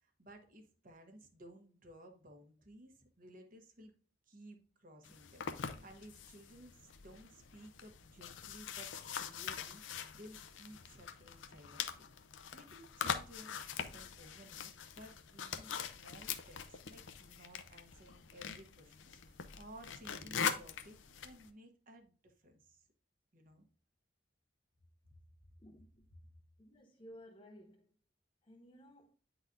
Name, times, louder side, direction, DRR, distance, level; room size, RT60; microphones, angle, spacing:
voice 1, 0.0-3.9 4.3-12.1 12.5-22.9 23.3-23.7, equal, 50° right, 1.1 m, -57 dB
sound 1, 5.0-21.5, left 7 dB, 90° left, 0.6 m, -43 dB
voice 2, 25.6-26.1 26.6-28.0 28.4-29.1, equal, 30° left, 0.6 m, -57 dB
9.3 x 4.0 x 2.6 m
head